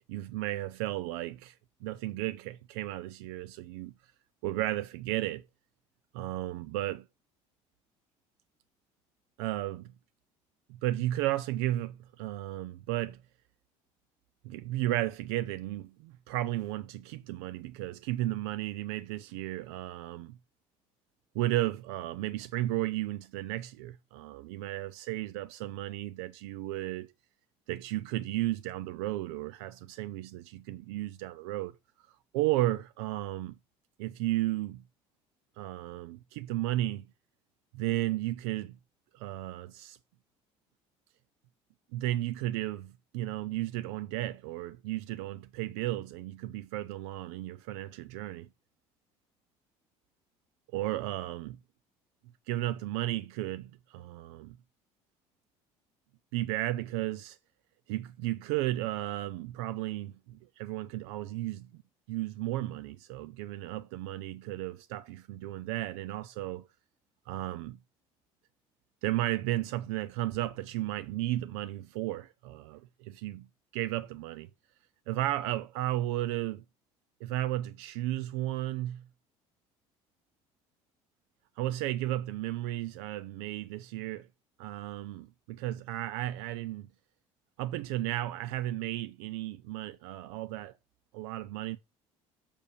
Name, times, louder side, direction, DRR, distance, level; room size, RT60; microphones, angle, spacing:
voice 1, 0.1-3.9 4.4-5.4 6.1-7.1 9.4-9.9 10.7-13.2 14.4-20.4 21.3-27.1 27.7-31.7 32.1-33.6 34.0-34.8 35.6-37.1 37.7-38.8 39.1-40.0 41.9-48.5 50.7-51.6 52.5-54.6 56.3-57.4 57.9-61.7 62.1-66.7 67.3-67.8 69.0-73.5 73.7-74.5 75.1-76.6 77.2-79.0 81.6-84.3 84.6-86.9 87.6-90.7 91.1-91.8, right 15 dB, 90° right, 0.5 m, -34 dB
6.7 x 5.1 x 6.8 m
supercardioid pair, 90°, 13 cm